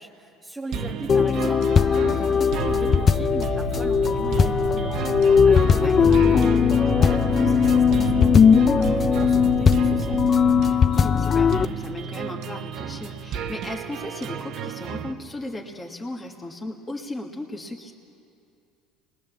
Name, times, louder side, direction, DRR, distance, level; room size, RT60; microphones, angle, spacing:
voice 1, 0.0-6.5 6.8-10.2, right 2 dB, 10° right, -4 dB, 1.7 m, -38 dB
sound 1, 0.7-15.1, right 7 dB, 55° right, 1.1 m, -34 dB
sound 2, 1.1-11.7, left 6 dB, 35° left, 0.5 m, -19 dB
sound 3, 2.6-10.7, right 9 dB, 85° right, 0.7 m, -32 dB
voice 2, 5.8-6.4 10.9-17.9, left 1 dB, 15° left, 0 dB, 1.8 m, -36 dB
24.5 x 20.5 x 7.1 m, 2.5 s
supercardioid pair, 105°, 0 cm